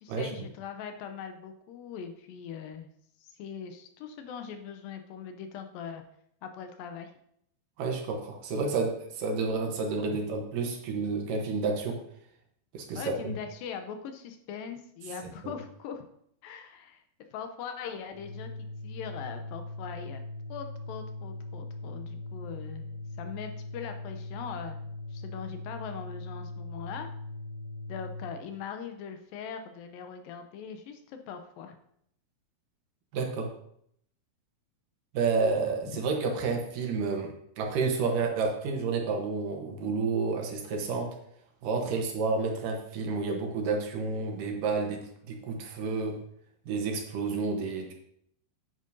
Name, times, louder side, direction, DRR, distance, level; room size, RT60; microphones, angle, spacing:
voice 1, 0.0-2.9 3.2-6.0 6.4-7.1 12.9-16.0 16.4-17.0 17.3-20.2 20.5-24.8 25.1-27.1 27.9-31.8, left 7 dB, 80° left, 6 dB, 2.3 m, -41 dB
voice 2, 7.8-12.0 12.7-13.3 15.4-15.5 33.1-33.5 35.1-41.1 41.6-46.2 46.7-47.9, right 4 dB, 70° right, 2 dB, 2.5 m, -30 dB
Organ, 18.1-28.4, left 2 dB, 60° left, 2.0 m, -40 dB
9.0 x 8.8 x 2.7 m, 0.69 s
omnidirectional pair, 4.3 m